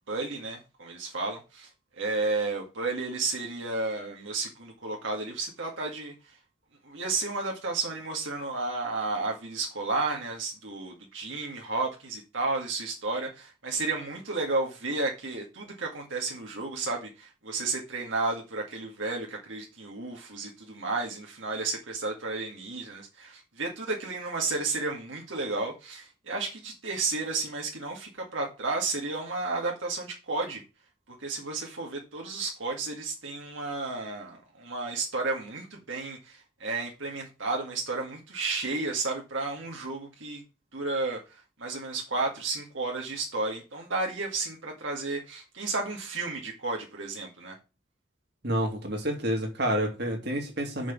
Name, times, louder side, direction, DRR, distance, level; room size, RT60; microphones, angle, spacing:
voice 1, 0.1-6.4 6.8-30.6 31.1-40.4 40.7-47.6, right 3 dB, 75° right, 2.0 m, -32 dB
voice 2, 48.4-50.9, equal, 55° right, 2.4 m, -29 dB
6.1 x 6.0 x 7.2 m
head